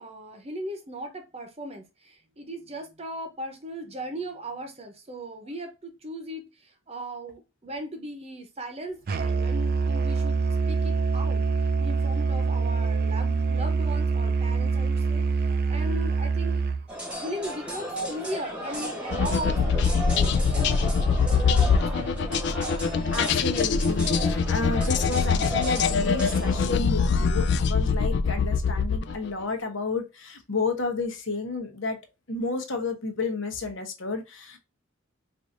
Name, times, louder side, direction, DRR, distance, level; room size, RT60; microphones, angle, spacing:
voice 1, 0.0-11.4 11.8-16.6 17.1-21.5 21.7-22.3, equal, 30° right, 0.8 m, -38 dB
Musical instrument, 9.1-16.9, right 4 dB, 50° right, 0.4 m, -25 dB
sound 1, 16.9-26.6, equal, 5° right, 1.0 m, -35 dB
sound 2, 19.1-29.3, left 5 dB, 60° left, 0.4 m, -23 dB
voice 2, 23.1-32.0 32.3-34.6, left 3 dB, 80° left, 1.0 m, -31 dB
4.7 x 2.6 x 2.5 m
head